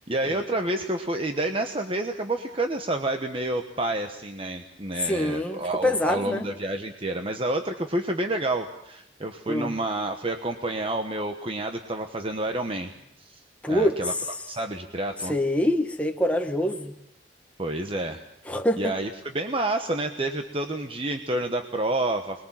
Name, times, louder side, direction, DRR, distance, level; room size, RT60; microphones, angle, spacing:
voice 1, 0.1-12.9 13.2-13.4 13.7-14.1 14.5-15.4 17.6-18.2 18.8-22.4, right 2 dB, 30° right, 1.2 m, -29 dB
voice 2, 5.0-6.5 9.5-9.7 13.6-14.0 15.3-16.9 18.5-18.9, left 1 dB, 5° left, 1.1 m, -25 dB
25.5 x 21.5 x 7.5 m
head